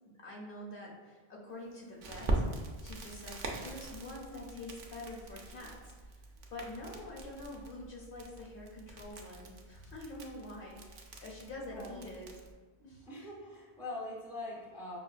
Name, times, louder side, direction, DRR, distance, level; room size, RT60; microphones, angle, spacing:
voice 1, 0.2-2.4 2.8-5.8 6.5-12.3 12.8-13.1, left 1 dB, 60° left, -3 dB, 0.8 m, -46 dB
Crackle, 2.0-12.5, right 2 dB, 55° right, 0.6 m, -41 dB
voice 2, 11.7-12.1 13.0-15.0, left 2 dB, 5° right, -5 dB, 0.5 m, -43 dB
5.5 x 2.1 x 2.4 m, 1.3 s
omnidirectional pair, 1.1 m